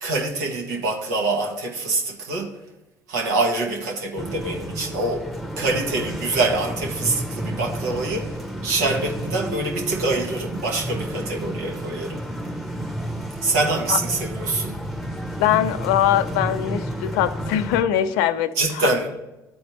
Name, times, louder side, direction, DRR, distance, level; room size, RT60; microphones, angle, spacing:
voice 1, 0.0-2.5 3.1-5.2 5.6-12.2 13.4-14.7 18.5-19.1, right 3 dB, 90° right, 1.3 m, -25 dB
sound 1, 4.2-17.8, right 1 dB, ahead, 0.9 m, -31 dB
voice 2, 15.4-18.9, left 11 dB, 85° left, 0.4 m, -22 dB
12.0 x 4.3 x 3.0 m
hypercardioid pair, 60°, 9 cm